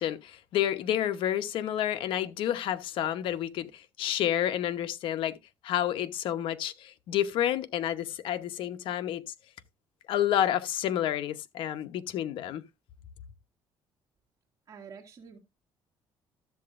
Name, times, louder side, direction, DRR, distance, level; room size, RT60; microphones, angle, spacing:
voice 1, 0.0-5.4 5.6-9.2 10.1-12.6, left 11 dB, 70° left, 0.9 m, -29 dB
voice 2, 14.7-15.4, right 6 dB, 35° right, 2.2 m, -47 dB
13.0 x 7.7 x 2.5 m
cardioid pair, 125°, 9 cm